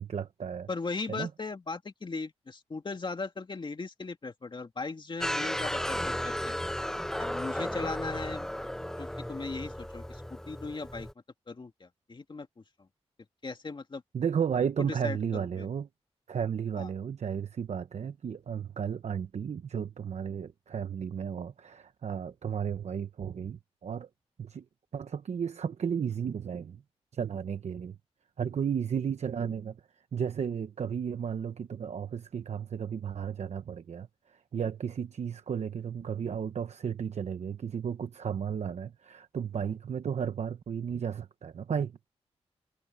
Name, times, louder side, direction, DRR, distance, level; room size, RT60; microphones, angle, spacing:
voice 1, 0.0-0.7 1.1-1.3 14.1-15.9 16.3-24.1 24.4-24.6 24.9-26.8 27.1-28.0 28.4-29.8 30.1-34.1 34.5-42.0, right 7 dB, 85° right, 0.9 m, -33 dB
voice 2, 0.7-6.6 7.2-8.5 9.0-11.1 11.5-12.9 13.4-14.0 14.8-15.7 16.8-16.9, left 4 dB, 45° left, 2.3 m, -38 dB
sound 1, 5.2-11.1, equal, 5° left, 0.6 m, -34 dB
wide cardioid pair, 90°, 11 cm